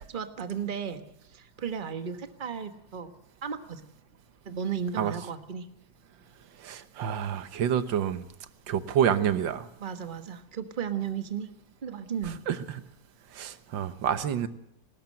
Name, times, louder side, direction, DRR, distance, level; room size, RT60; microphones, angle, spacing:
voice 1, 0.1-1.0 1.3-3.1 3.4-3.8 4.4-5.7 9.8-11.5 11.8-12.4, right 7 dB, 30° right, 9 dB, 1.3 m, -34 dB
voice 2, 6.6-8.3 8.7-9.7 12.2-12.8 13.3-14.5, right 9 dB, 90° right, 13 dB, 1.7 m, -28 dB
19.5 x 18.0 x 7.6 m, 0.77 s
omnidirectional pair, 2.0 m